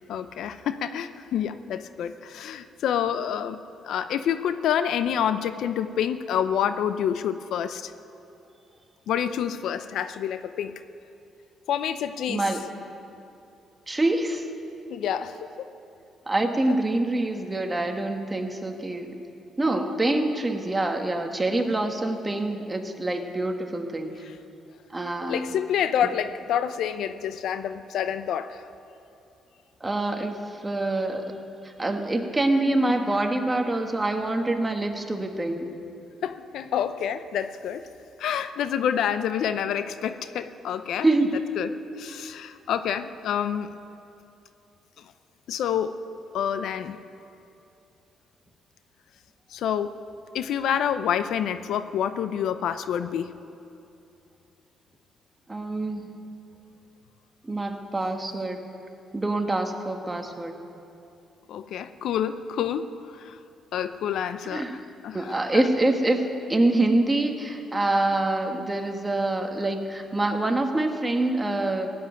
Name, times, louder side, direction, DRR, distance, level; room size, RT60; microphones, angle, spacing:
voice 1, 0.1-3.6 3.8-7.9 9.1-10.8 11.7-12.4 14.9-15.5 24.3-24.4 25.3-28.7 36.2-37.9 38.2-41.1 41.6-43.8 45.5-46.0 46.3-47.0 49.5-49.9 50.3-53.3 61.5-63.4 63.7-65.7, left 9 dB, 75° left, 12 dB, 0.6 m, -28 dB
voice 2, 12.3-12.6 13.9-14.5 16.3-19.1 19.6-24.1 24.9-25.5 29.8-31.2 31.6-35.7 41.0-41.4 55.5-56.2 57.4-58.6 59.1-60.5 64.5-64.8 65.1-71.9, right 2 dB, 20° right, 4 dB, 1.5 m, -25 dB
16.5 x 8.0 x 9.6 m, 2.7 s
cardioid pair, 90°, 0 cm